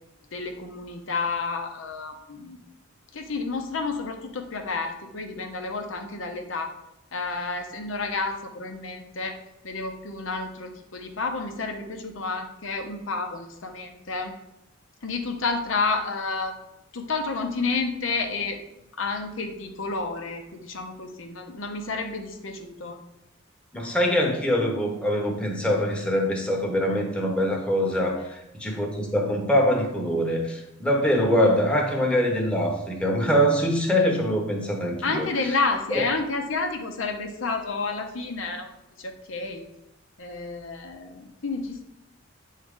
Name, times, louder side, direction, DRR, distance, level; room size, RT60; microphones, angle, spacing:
voice 1, 0.3-2.6 3.1-6.7 7.1-14.3 15.0-16.5 16.9-18.6 19.0-23.0 35.0-38.7 39.0-39.7 40.2-41.9, left 3 dB, 85° left, 4 dB, 0.8 m, -30 dB
voice 2, 23.7-35.3 35.9-36.0, equal, 5° left, -1 dB, 1.0 m, -23 dB
8.7 x 3.7 x 3.6 m, 0.87 s
head